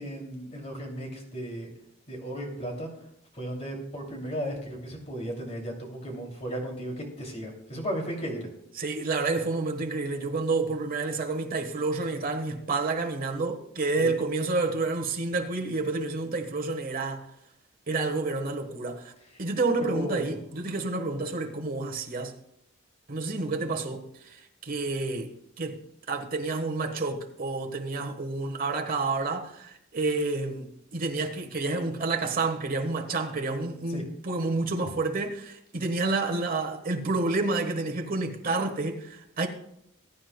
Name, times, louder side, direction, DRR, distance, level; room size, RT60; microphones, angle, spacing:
voice 1, 0.0-1.7 2.1-2.9 3.3-8.5 14.0-14.1 19.8-20.4 33.9-34.0, equal, 35° left, 2.6 m, -35 dB
voice 2, 8.8-17.3 17.9-19.1 19.4-22.3 23.1-25.8 26.1-39.5, right 3 dB, 45° right, 1.3 m, -29 dB
20.5 x 9.4 x 2.2 m
head